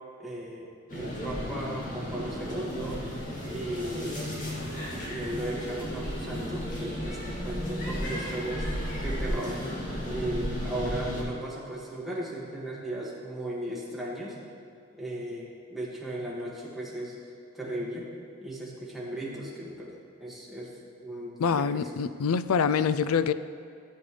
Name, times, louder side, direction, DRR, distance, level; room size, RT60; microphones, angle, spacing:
voice 1, 0.2-3.0 3.5-4.2 5.0-8.7 9.0-9.6 10.1-14.4 15.0-17.1 17.5-18.1 18.4-20.7 21.0-21.9, right 1 dB, ahead, -6 dB, 1.8 m, -36 dB
sound 1, 0.9-11.2, equal, 40° left, 2.1 m, -34 dB
voice 2, 21.4-23.3, left 6 dB, 85° left, 14 dB, 0.4 m, -25 dB
14.5 x 8.4 x 3.2 m, 2.5 s
head